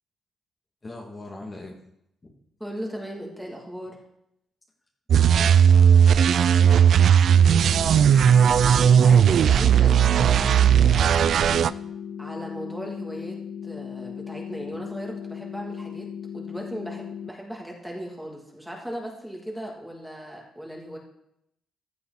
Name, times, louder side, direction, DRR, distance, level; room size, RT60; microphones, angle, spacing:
voice 1, 0.8-1.7 2.2-2.3 5.3-6.7 14.7-14.8, left 2 dB, 25° left, -1 dB, 2.4 m, -41 dB
voice 2, 2.6-4.0 8.5-11.3 12.2-16.1 16.3-21.0, equal, 5° right, -1 dB, 2.7 m, -38 dB
sound 1, 5.1-11.7, right 8 dB, 60° right, 0.3 m, -17 dB
sound 2, 7.3-17.3, left 8 dB, 50° left, 0.7 m, -37 dB
15.5 x 8.4 x 4.2 m, 0.77 s
cardioid pair, 90°, 0 cm